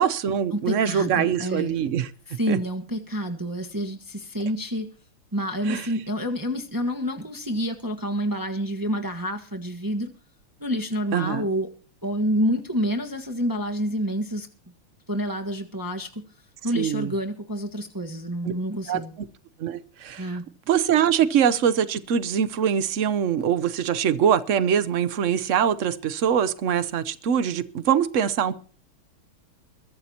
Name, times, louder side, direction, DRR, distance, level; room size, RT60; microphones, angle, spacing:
voice 1, 0.0-2.1 2.5-2.6 5.7-5.9 11.1-11.5 16.7-17.1 18.4-18.5 18.9-19.0 19.6-20.4 20.7-28.5, right 8 dB, 85° right, 13 dB, 0.6 m, -23 dB
voice 2, 0.5-1.7 2.3-4.9 5.3-10.1 10.6-11.7 12.0-14.5 15.1-16.1 16.6-19.1 20.2-20.5, equal, 10° right, 4 dB, 1.1 m, -28 dB
22.5 x 12.0 x 2.9 m, 0.41 s
omnidirectional pair, 2.4 m